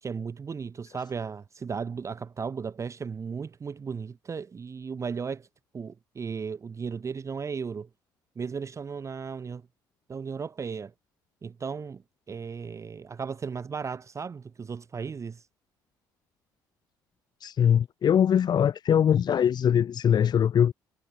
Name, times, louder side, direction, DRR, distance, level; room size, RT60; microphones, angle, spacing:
voice 1, 0.0-5.5 5.7-7.9 8.4-9.6 10.1-10.9 11.4-15.4, right 5 dB, 30° right, 0.8 m, -35 dB
voice 2, 17.4-20.7, left 9 dB, 45° left, 1.2 m, -22 dB
figure-of-eight pair, 50°, 10 cm